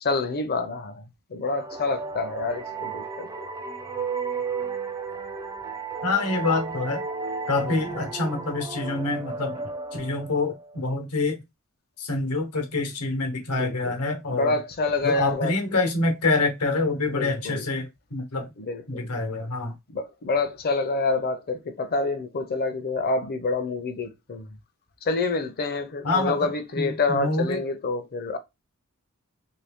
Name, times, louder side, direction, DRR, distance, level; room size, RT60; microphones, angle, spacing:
voice 1, 0.0-3.5 7.6-7.8 13.5-13.9 14.3-15.6 17.1-17.7 18.6-19.2 19.9-24.5 25.0-28.4, left 3 dB, 45° left, 0.6 m, -27 dB
sound 1, 1.5-10.9, right 4 dB, 15° right, 0.4 m, -34 dB
voice 2, 6.0-7.0 7.5-9.6 9.9-11.4 12.0-14.5 15.0-18.5 18.9-19.7 26.0-26.5 26.7-27.6, left 3 dB, 85° left, 1.1 m, -26 dB
3.0 x 2.7 x 3.5 m
head